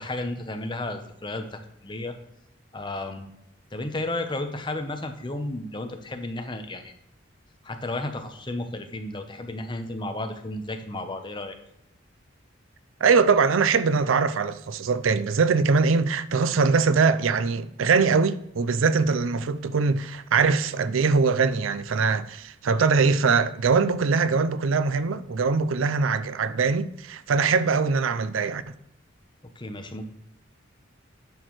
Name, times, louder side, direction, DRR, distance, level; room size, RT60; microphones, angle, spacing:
voice 1, 0.0-2.1 2.7-3.3 3.7-6.9 7.6-11.6 29.6-30.0, left 2 dB, 25° left, 0.8 m, -33 dB
voice 2, 13.0-28.7, right 5 dB, 90° right, 0.5 m, -22 dB
10.5 x 6.2 x 3.1 m
head